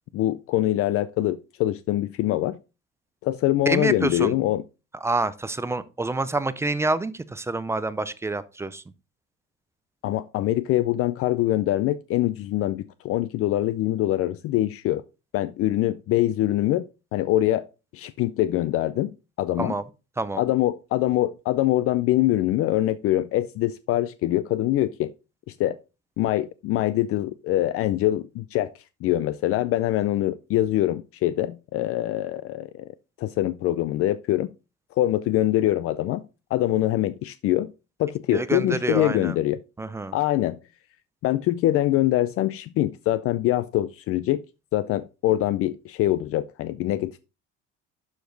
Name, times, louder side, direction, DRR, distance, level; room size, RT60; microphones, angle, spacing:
voice 1, 0.1-2.6 3.2-4.6 10.0-15.0 15.3-17.6 17.9-19.1 19.4-19.7 20.4-25.1 25.5-25.8 26.2-32.9 33.2-34.5 35.0-36.2 36.5-37.7 38.0-39.6 40.1-40.6 41.2-44.4 44.7-47.2, left 14 dB, 50° left, 0.4 m, -24 dB
voice 2, 3.7-4.3 5.0-8.8 19.6-19.8 20.2-20.4 38.3-39.4 39.8-40.2, right 3 dB, 10° right, 0.4 m, -27 dB
11.5 x 4.9 x 3.8 m
cardioid pair, 160°, 29 cm